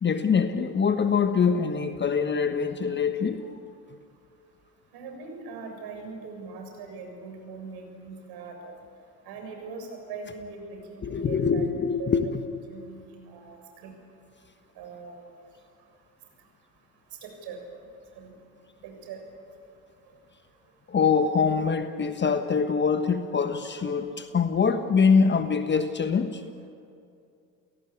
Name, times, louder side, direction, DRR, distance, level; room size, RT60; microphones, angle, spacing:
voice 1, 0.0-3.4 11.0-12.4 20.9-26.4, left 5 dB, 25° left, 9 dB, 1.3 m, -24 dB
voice 2, 4.9-8.7 9.2-11.6 12.0-12.1 12.7-13.9 14.8-15.2 17.2-17.6 18.1-18.3 18.8-19.2, right 4 dB, 50° right, 3 dB, 7.1 m, -41 dB
29.0 x 17.5 x 8.5 m, 2.5 s
figure-of-eight pair, 70°, 47 cm